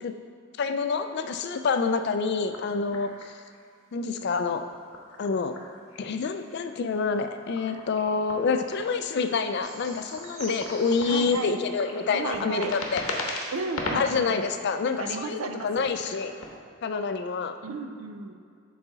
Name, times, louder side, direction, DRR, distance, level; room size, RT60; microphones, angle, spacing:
voice 1, 0.6-3.1 3.9-4.6 5.2-5.5 6.0-13.0 13.9-16.3 16.8-17.6, left 5 dB, 50° left, 8 dB, 0.3 m, -27 dB
sound 1, 2.4-3.7 4.6-6.0 6.2-14.2 14.8-16.6, left 2 dB, 70° left, 0.9 m, -38 dB
sound 2, 9.6-13.9 14.4-14.5, equal, 30° right, 1.6 m, -46 dB
voice 2, 11.0-11.5 12.1-12.7 13.5-14.4 15.0-15.9 17.6-18.3, right 3 dB, 70° right, 6 dB, 0.5 m, -34 dB
6.9 x 4.1 x 3.9 m, 2.3 s
head